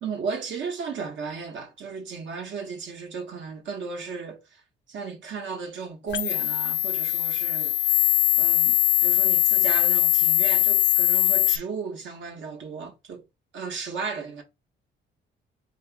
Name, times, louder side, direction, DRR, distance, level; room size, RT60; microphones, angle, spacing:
voice 1, 0.0-4.6 4.9-7.8 8.4-13.2 13.5-14.4, right 5 dB, 70° right, 1.3 m, -35 dB
sound 1, 6.1-11.6, left 15 dB, 60° left, 0.4 m, -21 dB
3.2 x 2.9 x 4.6 m
cardioid pair, 90°, 20 cm